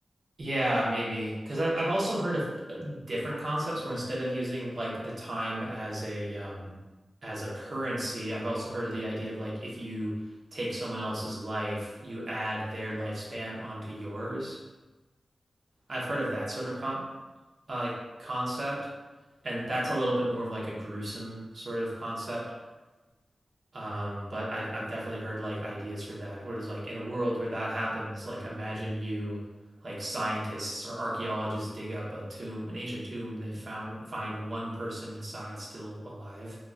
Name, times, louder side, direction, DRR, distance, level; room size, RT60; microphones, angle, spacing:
voice 1, 0.4-6.7 7.2-10.2 10.5-14.6 15.9-17.0 17.7-18.9 19.4-22.5 23.7-29.4 29.8-36.6, right 1 dB, 65° right, -5 dB, 1.0 m, -33 dB
3.9 x 2.9 x 2.3 m, 1.2 s
cardioid pair, 60°, 0 cm